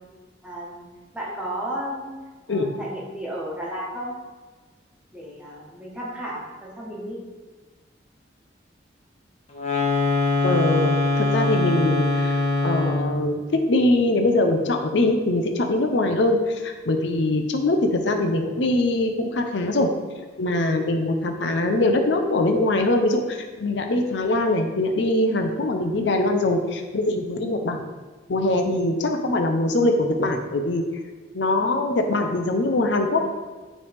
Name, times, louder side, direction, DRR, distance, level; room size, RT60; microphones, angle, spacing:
voice 1, 0.4-0.8 1.1-2.1 2.5-4.1 5.1-7.2, right 1 dB, 5° right, -5 dB, 1.3 m, -33 dB
sound 1, 9.5-13.2, left 2 dB, 35° left, 1.1 m, -22 dB
voice 2, 10.4-19.9 20.4-27.8 28.3-30.8 31.3-33.3, left 2 dB, 75° left, 4 dB, 0.6 m, -22 dB
9.7 x 3.2 x 3.4 m, 1.3 s
head